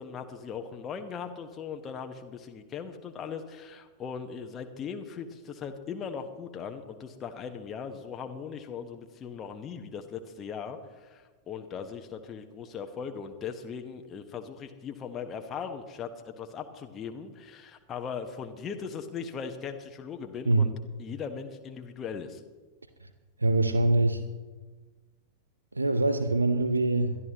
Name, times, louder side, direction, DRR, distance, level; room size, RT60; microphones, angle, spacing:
voice 1, 0.0-20.7 21.0-22.4, left 6 dB, 25° left, 5 dB, 1.2 m, -39 dB
voice 2, 23.4-24.2 25.7-27.2, right 2 dB, 80° right, 10 dB, 0.7 m, -24 dB
21.5 x 12.5 x 3.0 m, 1.3 s
figure-of-eight pair, 90°, 0 cm